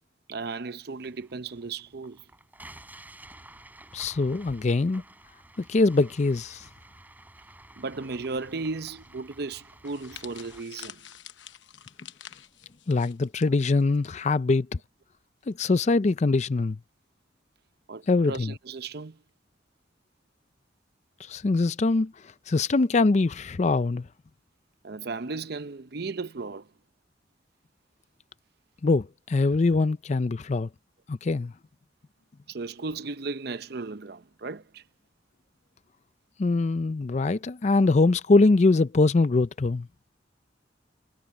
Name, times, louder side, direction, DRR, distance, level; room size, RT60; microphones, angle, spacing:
voice 1, 0.3-2.3 7.8-11.1 17.9-19.2 24.8-26.7 32.5-34.8, right 3 dB, 55° right, 0.7 m, -35 dB
sound 1, 1.0-10.6, right 1 dB, 10° right, 3.6 m, -51 dB
voice 2, 3.9-5.0 5.6-6.7 12.9-14.7 15.5-16.8 18.1-18.5 21.2-22.1 22.5-24.1 28.8-30.7 31.1-31.5 36.4-39.9, left 3 dB, 40° left, 0.4 m, -23 dB
sound 2, 9.8-14.1 14.4-14.6 15.5-15.8, left 10 dB, 80° left, 1.0 m, -47 dB
head